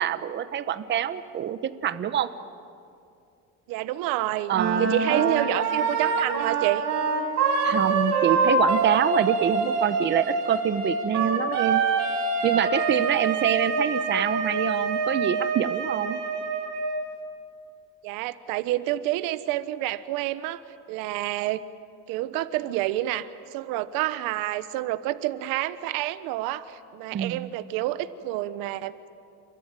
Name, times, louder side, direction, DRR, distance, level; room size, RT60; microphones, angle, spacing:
voice 1, 0.0-2.3 4.5-5.4 7.6-11.8 12.4-16.2 27.1-27.5, right 9 dB, 35° right, 12 dB, 1.0 m, -26 dB
voice 2, 3.7-6.9 18.0-20.6 20.9-21.6 22.1-28.9, right 15 dB, 75° right, 14 dB, 1.2 m, -28 dB
Wind instrument woodwind instrument, 4.5-17.0, right 4 dB, 50° right, 5.6 m, -25 dB
29.0 x 22.0 x 9.1 m, 2.5 s
cardioid pair, 135°, 34 cm